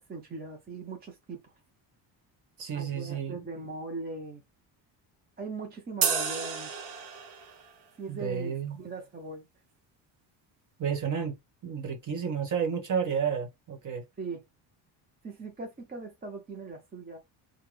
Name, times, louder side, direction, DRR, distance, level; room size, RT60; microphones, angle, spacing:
voice 1, 0.0-1.5 2.7-4.4 5.4-6.7 8.0-9.5 14.2-14.4 15.2-17.2, right 3 dB, 20° right, 0.6 m, -40 dB
voice 2, 2.6-3.4 8.1-8.8 10.8-11.4 11.6-14.0, right 7 dB, 40° right, 1.4 m, -31 dB
sound 1, 6.0-7.6, right 6 dB, 60° right, 1.0 m, -31 dB
3.6 x 2.3 x 3.3 m
cardioid pair, 130°, 46 cm